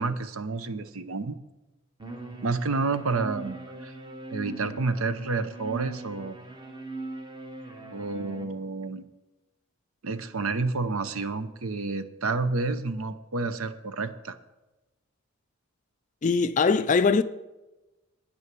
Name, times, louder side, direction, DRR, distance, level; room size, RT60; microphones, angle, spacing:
voice 1, 0.0-1.4 2.4-3.9 4.3-6.4 7.9-9.0 10.0-14.4, right 3 dB, 85° right, 0.8 m, -30 dB
sound 1, 2.0-8.4, right 3 dB, 20° right, 0.9 m, -40 dB
voice 2, 16.2-17.2, left 4 dB, 35° left, 0.4 m, -21 dB
9.8 x 9.7 x 6.1 m
head